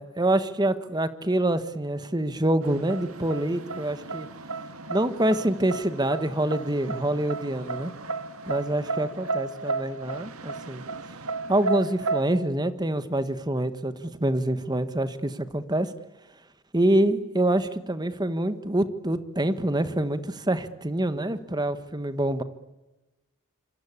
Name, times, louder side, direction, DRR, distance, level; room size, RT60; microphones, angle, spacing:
voice 1, 0.0-4.3 4.9-7.9 8.5-10.8 11.5-15.9 16.7-22.4, right 1 dB, 20° right, 12 dB, 1.4 m, -26 dB
sound 1, 2.6-12.2, right 3 dB, 90° right, 1.8 m, -33 dB
26.5 x 26.0 x 8.5 m, 1.1 s
head